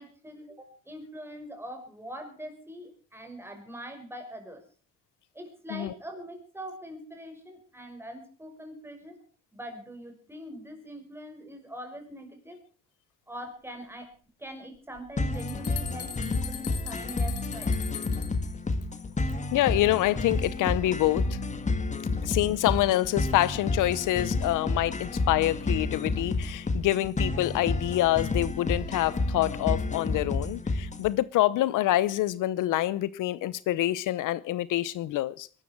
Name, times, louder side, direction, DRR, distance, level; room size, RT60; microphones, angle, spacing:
voice 1, 0.0-4.6 5.3-9.2 9.5-12.6 13.3-14.1 14.4-17.8 22.2-22.4, equal, 5° right, 5.6 m, -43 dB
sound 1, 15.0-15.1 15.3-18.5, left 8 dB, 45° left, 2.9 m, -40 dB
sound 2, 15.2-31.1, left 3 dB, 20° left, 1.8 m, -30 dB
voice 2, 19.5-21.4 22.2-35.5, left 15 dB, 70° left, 0.8 m, -26 dB
22.0 x 13.0 x 4.5 m
cardioid pair, 110°, 33 cm